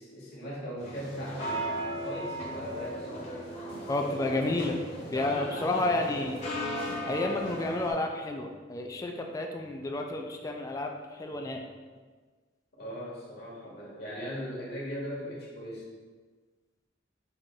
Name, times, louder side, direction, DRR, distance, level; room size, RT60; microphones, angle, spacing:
voice 1, 0.0-1.7 2.0-3.3 12.8-15.9, equal, 55° left, -5 dB, 1.2 m, -38 dB
sound 1, 0.8-7.9, equal, 35° left, 1.0 m, -36 dB
voice 2, 3.9-4.8 5.1-6.4 7.1-10.9 11.2-11.6, left 2 dB, 20° left, 2 dB, 0.3 m, -30 dB
5.6 x 2.5 x 3.5 m, 1.4 s
head